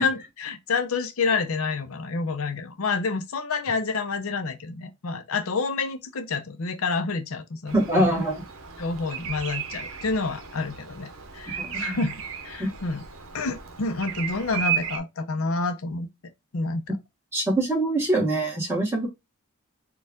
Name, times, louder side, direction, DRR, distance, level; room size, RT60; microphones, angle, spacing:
voice 1, 0.0-8.1 8.8-12.1 12.4-13.0 13.3-16.1 16.5-16.8, left 4 dB, 75° left, 0.6 m, -28 dB
voice 2, 7.7-8.4 11.6-12.0 12.6-12.7 17.3-19.1, right 1 dB, 10° right, 1.5 m, -24 dB
Bird vocalization bird call bird song, 7.7-15.0, right 8 dB, 70° right, 0.8 m, -34 dB
4.3 x 2.4 x 3.5 m
head